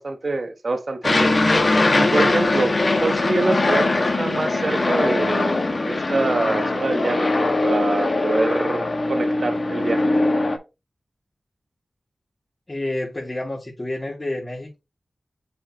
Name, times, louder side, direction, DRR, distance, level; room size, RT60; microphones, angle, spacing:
voice 1, 0.0-1.3 1.9-10.0, right 3 dB, 65° right, 1.0 m, -25 dB
Aircraft, 1.0-10.6, left 2 dB, 60° left, 1.6 m, -21 dB
voice 2, 12.7-14.8, left 1 dB, 35° left, 2.8 m, -29 dB
7.6 x 4.7 x 2.9 m
cardioid pair, 45°, 0 cm